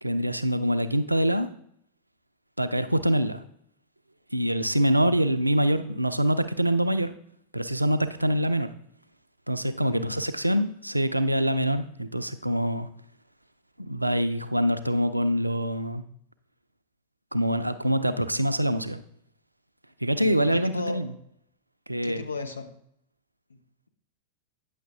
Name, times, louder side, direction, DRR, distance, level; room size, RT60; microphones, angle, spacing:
voice 1, 0.0-1.5 2.6-3.4 4.3-7.1 7.5-8.7 9.5-12.9 13.8-16.0 17.3-19.0 20.0-21.1 21.9-22.2, equal, 85° right, 11 dB, 0.5 m, -25 dB
voice 2, 20.2-21.0 22.0-22.7 23.5-23.6, left 3 dB, 75° left, 7 dB, 0.9 m, -35 dB
9.2 x 6.4 x 3.4 m, 0.71 s
figure-of-eight pair, 90°, 0 cm